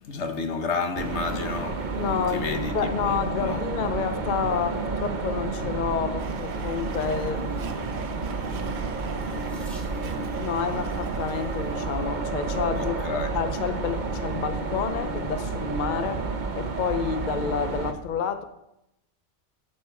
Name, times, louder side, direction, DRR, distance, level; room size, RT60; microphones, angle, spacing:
voice 1, 0.0-3.6 12.7-13.3, left 4 dB, 70° left, 1.3 m, -31 dB
sound 1, 0.9-17.9, right 4 dB, 40° right, 1.0 m, -30 dB
voice 2, 1.9-7.9 10.4-13.0 13.3-16.2 16.5-18.4, left 6 dB, 45° left, 0.7 m, -29 dB
Domestic sounds home sounds, 6.2-11.9, right 7 dB, 85° right, 1.1 m, -44 dB
Water tap faucet / Sink (filling or washing), 9.2-10.4 11.5-11.9 12.6-12.7 13.0-13.1, equal, ahead, 3.1 m, -52 dB
11.5 x 8.8 x 4.7 m
omnidirectional pair, 1.2 m